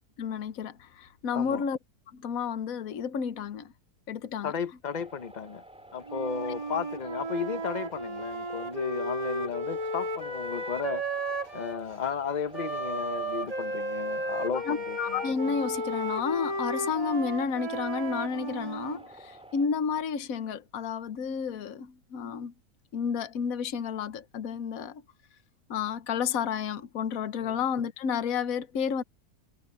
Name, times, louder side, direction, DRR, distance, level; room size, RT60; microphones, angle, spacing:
voice 1, 0.2-1.8 2.1-3.7 4.1-4.5 14.5-22.5 22.9-25.0 25.7-29.0, left 6 dB, 65° left, 1.4 m, -31 dB
voice 2, 1.3-1.6 4.4-5.6 5.9-11.0 11.5-15.2 27.4-27.6, left 7 dB, 35° left, 0.9 m, -34 dB
sound 1, 4.9-19.7, right 1 dB, 5° right, 2.7 m, -51 dB
Wind instrument woodwind instrument, 6.1-11.8 12.5-19.0, right 1 dB, 25° right, 2.1 m, -34 dB
omnidirectional pair, 1.6 m